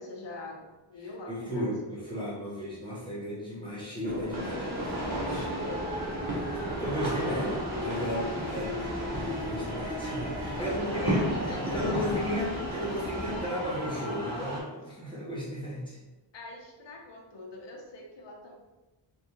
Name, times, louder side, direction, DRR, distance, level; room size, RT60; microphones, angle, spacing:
voice 1, 0.0-2.3 5.2-5.9 10.6-12.5 16.3-18.6, left 1 dB, 65° left, -1 dB, 0.8 m, -43 dB
voice 2, 1.3-4.7 5.1-5.4 6.3-8.8 9.4-16.0, equal, 10° left, -9 dB, 1.0 m, -34 dB
sound 1, 4.0-13.5, left 1 dB, 20° right, 0.8 m, -37 dB
sound 2, 4.3-14.6, right 1 dB, 50° right, 1.1 m, -34 dB
3.3 x 2.5 x 2.9 m, 1.1 s
wide cardioid pair, 105°, 46 cm